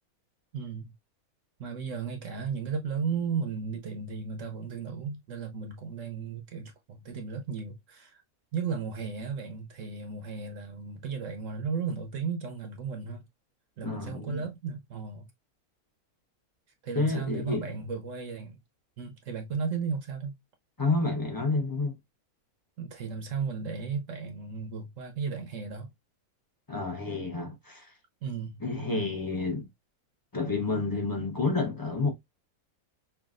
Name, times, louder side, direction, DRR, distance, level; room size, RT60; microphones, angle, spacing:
voice 1, 0.5-0.9 1.6-8.2 8.5-13.3 13.8-15.3 16.8-18.6 19.0-20.4 22.8-25.9 28.2-28.6, right 5 dB, 65° right, 1.0 m, -35 dB
voice 2, 13.8-14.4 17.0-17.8 20.8-22.0 26.7-27.9 28.6-29.7 30.3-32.1, left 3 dB, 20° left, 0.6 m, -29 dB
5.7 x 2.4 x 2.4 m
omnidirectional pair, 1.6 m